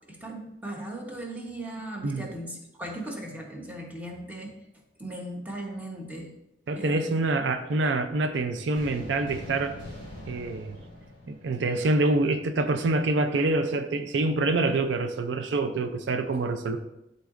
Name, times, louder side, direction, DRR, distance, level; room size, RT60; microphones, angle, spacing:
voice 1, 0.1-4.6 5.0-6.3 6.8-7.2, right 1 dB, 10° right, 1.0 m, -38 dB
voice 2, 6.7-9.8 10.3-10.8 11.3-16.8, right 2 dB, 90° right, 0.5 m, -26 dB
sound 1, 8.7-12.2, left 1 dB, 50° right, 2.1 m, -43 dB
11.5 x 4.0 x 2.5 m
head